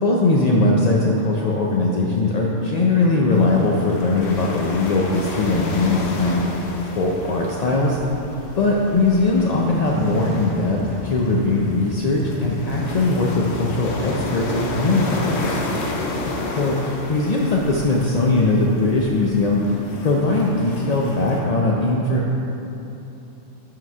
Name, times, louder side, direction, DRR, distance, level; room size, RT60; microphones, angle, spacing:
voice 1, 0.0-6.5 7.0-8.0 8.6-15.6 16.6-16.8 17.1-22.4, left 2 dB, 60° left, -3 dB, 0.4 m, -20 dB
sound 1, 3.3-21.4, left 2 dB, 75° left, 1.1 m, -31 dB
5.8 x 4.7 x 5.3 m, 2.9 s
omnidirectional pair, 1.3 m